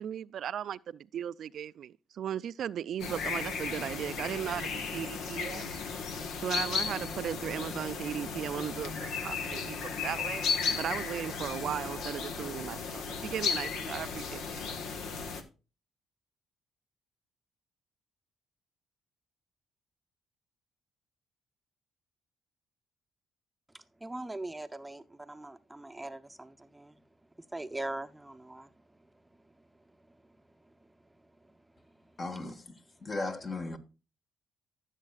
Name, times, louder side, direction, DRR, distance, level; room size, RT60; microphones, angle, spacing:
voice 1, 0.0-5.6 6.4-10.5 10.7-14.8, right 9 dB, 65° right, 0.3 m, -37 dB
sound 1, 3.0-15.4, left 5 dB, 80° left, 1.4 m, -35 dB
voice 2, 23.7-27.0 27.4-32.2, right 2 dB, 10° right, 0.7 m, -43 dB
voice 3, 32.2-33.8, left 3 dB, 35° left, 1.5 m, -37 dB
14.5 x 7.4 x 2.4 m
cardioid pair, 90°, 0 cm